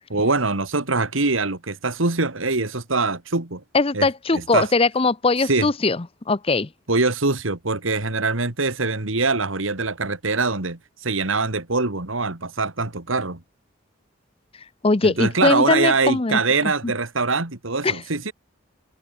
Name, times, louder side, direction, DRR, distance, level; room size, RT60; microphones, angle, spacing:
voice 1, 0.1-3.6 3.9-4.7 5.4-5.7 6.9-13.4 15.0-18.3, right 3 dB, 90° right, 2.5 m, -23 dB
voice 2, 3.7-6.0 6.3-6.7 14.8-16.4 17.8-18.0, left 3 dB, 30° left, 0.7 m, -20 dB
head